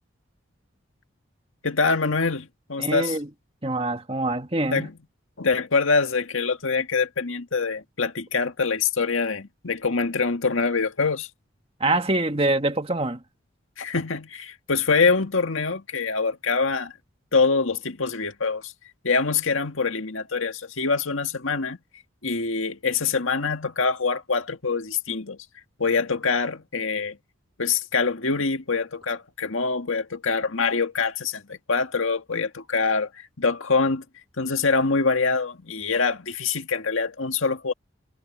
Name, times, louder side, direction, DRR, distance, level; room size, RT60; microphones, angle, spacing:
voice 1, 1.6-3.2 4.7-4.9 5.4-11.3 13.8-16.9 17.3-18.7 19.0-21.8 22.2-25.4 25.8-27.2 27.6-34.0 34.4-37.7, left 4 dB, 80° left, 1.9 m, -24 dB
voice 2, 2.8-3.3 3.6-4.9 11.8-13.2, right 2 dB, 30° right, 1.7 m, -25 dB
head